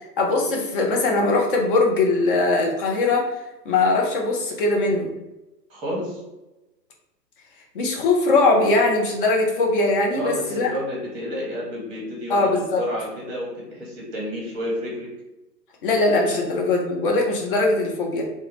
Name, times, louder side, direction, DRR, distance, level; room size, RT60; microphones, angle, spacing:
voice 1, 0.2-3.3 3.7-5.1 7.7-10.7 12.3-12.9 15.8-18.2, left 2 dB, 35° left, 0 dB, 0.5 m, -21 dB
voice 2, 5.7-6.2 10.1-15.1 16.3-16.4, equal, 15° right, -4 dB, 0.8 m, -30 dB
2.2 x 2.1 x 3.1 m, 1.0 s
hypercardioid pair, 130°, 50 cm